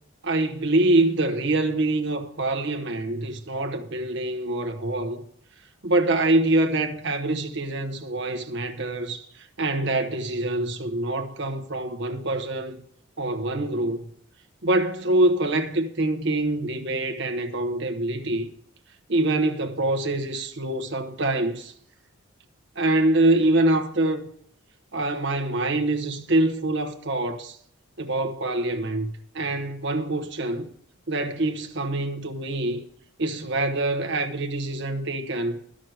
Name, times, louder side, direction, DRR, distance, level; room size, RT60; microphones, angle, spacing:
voice 1, 0.2-5.2 5.8-12.8 13.2-14.1 14.6-18.5 19.1-21.7 22.8-24.3 24.9-27.6 28.0-30.7 31.1-32.8 33.2-35.6, right 2 dB, 55° right, 1.1 m, -25 dB
11.5 x 6.3 x 7.8 m
head